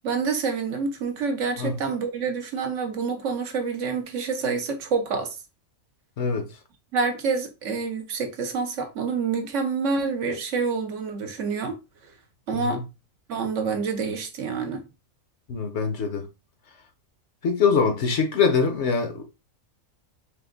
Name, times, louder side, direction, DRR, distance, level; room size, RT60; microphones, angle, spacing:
voice 1, 0.0-5.4 6.9-11.8 12.5-12.8 13.3-14.9, right 5 dB, 65° right, 1.1 m, -27 dB
voice 2, 6.2-6.5 12.5-12.8 15.5-16.3 17.4-19.2, left 5 dB, 60° left, 1.0 m, -23 dB
3.5 x 2.6 x 3.8 m
omnidirectional pair, 1.4 m